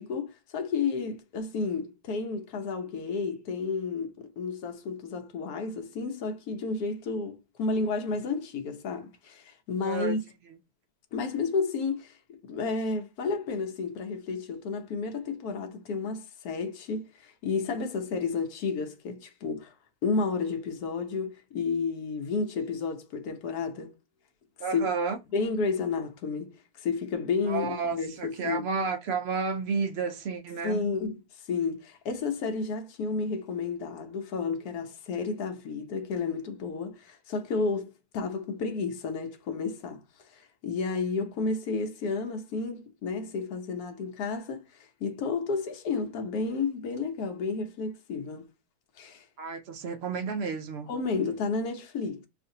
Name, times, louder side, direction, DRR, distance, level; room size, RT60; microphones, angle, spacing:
voice 1, 0.0-10.2 11.1-19.7 20.0-23.9 24.7-24.8 25.3-28.6 30.6-48.5 49.0-49.3 50.9-52.3, left 4 dB, 80° left, 1.2 m, -31 dB
voice 2, 9.8-10.2 24.6-25.2 27.5-30.8 49.4-50.9, right 5 dB, 65° right, 0.6 m, -31 dB
6.1 x 2.5 x 2.7 m
omnidirectional pair, 1.6 m